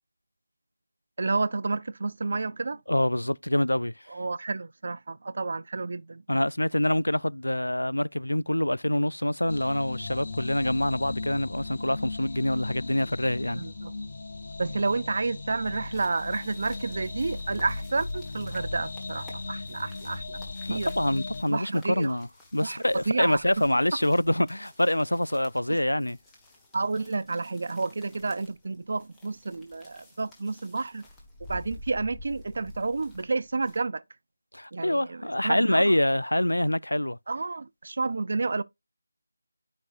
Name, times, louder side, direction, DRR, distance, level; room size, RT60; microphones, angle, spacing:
voice 1, 1.2-2.8 4.1-6.2 13.5-13.9 14.6-20.4 20.7-20.9 21.5-22.2 22.6-23.4 25.7-25.8 26.7-31.0 31.5-34.0 34.7-35.9 37.3-38.6, right 3 dB, 50° right, 0.4 m, -30 dB
voice 2, 2.9-3.9 6.3-13.6 20.7-26.2 34.5-37.2, left 1 dB, 90° left, 0.4 m, -26 dB
sound 1, 9.5-21.4, left 3 dB, 50° left, 0.6 m, -37 dB
sound 2, 15.6-33.8, left 2 dB, 5° left, 1.4 m, -50 dB
12.5 x 5.3 x 2.5 m
figure-of-eight pair, 165°, 0 cm